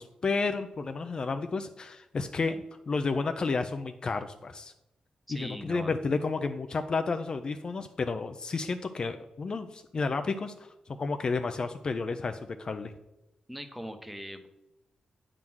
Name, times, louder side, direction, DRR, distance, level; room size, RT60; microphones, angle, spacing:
voice 1, 0.0-4.7 5.3-10.5 10.9-12.9, left 4 dB, 40° left, 8 dB, 0.5 m, -31 dB
voice 2, 5.3-5.9 13.5-14.5, equal, 5° right, 7 dB, 0.8 m, -40 dB
9.0 x 3.7 x 6.1 m, 0.93 s
wide cardioid pair, 135°, 2 cm